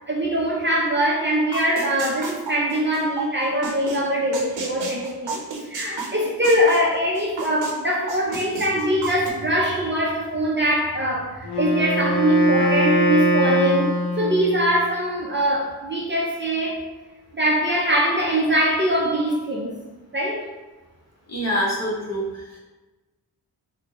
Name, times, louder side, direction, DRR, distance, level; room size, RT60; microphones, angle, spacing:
voice 1, 0.1-16.8 17.3-19.7 20.1-20.4, equal, 25° right, -3 dB, 0.5 m, -22 dB
sound 1, 1.5-3.2 3.6-4.0 4.3-7.7 8.1-9.3, right 4 dB, 90° right, 0.7 m, -31 dB
Wind instrument woodwind instrument, 11.4-14.7, equal, 70° left, 0.7 m, -22 dB
voice 2, 21.3-22.6, equal, 40° left, -4 dB, 0.9 m, -26 dB
4.2 x 2.1 x 2.9 m, 1.2 s
wide cardioid pair, 105°, 42 cm